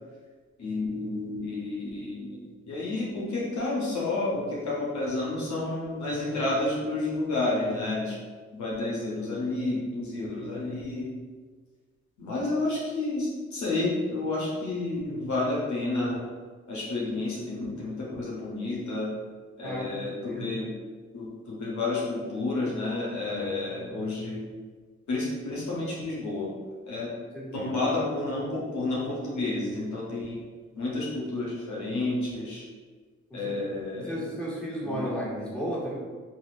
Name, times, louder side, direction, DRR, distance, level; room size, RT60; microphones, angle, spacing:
voice 1, 0.6-2.4 2.7-8.1 8.5-11.1 12.2-16.2 16.7-19.1 19.6-20.7 21.1-24.4 25.1-26.5 26.9-27.1 27.5-30.4 30.7-32.6 33.3-34.2 34.8-35.0, left 2 dB, 70° left, -5 dB, 0.8 m, -30 dB
voice 2, 19.6-20.6 27.3-27.7 33.3-35.9, equal, 5° left, -8 dB, 1.4 m, -34 dB
3.0 x 2.6 x 2.4 m, 1.5 s
supercardioid pair, 40°, 30 cm